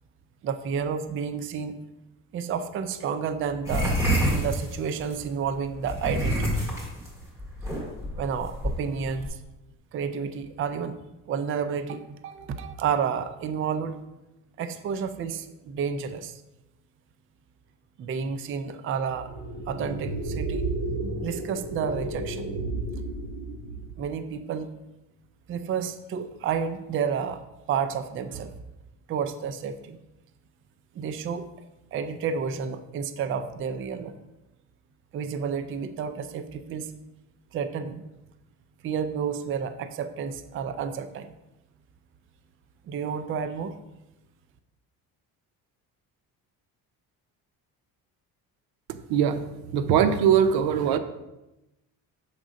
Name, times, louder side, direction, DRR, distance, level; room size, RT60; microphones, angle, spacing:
voice 1, 0.4-1.8 2.3-4.0 4.3-6.7 8.2-9.4 9.9-11.0 11.3-14.0 14.6-16.4 18.0-19.3 19.7-20.7 21.2-22.5 24.0-24.8 25.5-27.4 27.7-28.6 29.1-30.0 30.9-31.5 31.9-34.2 35.1-37.0 37.5-38.0 38.8-41.3 42.9-43.8, right 6 dB, 35° right, 9 dB, 0.4 m, -30 dB
sound 1, 3.7-5.2 5.8-9.3, equal, 10° right, 2.1 m, -27 dB
sound 2, 19.2-24.0, right 2 dB, 60° right, 2.5 m, -32 dB
voice 2, 49.1-49.4 49.7-51.0, right 8 dB, 80° right, 10 dB, 0.7 m, -21 dB
7.0 x 3.6 x 5.1 m, 0.96 s
cardioid pair, 130°, 37 cm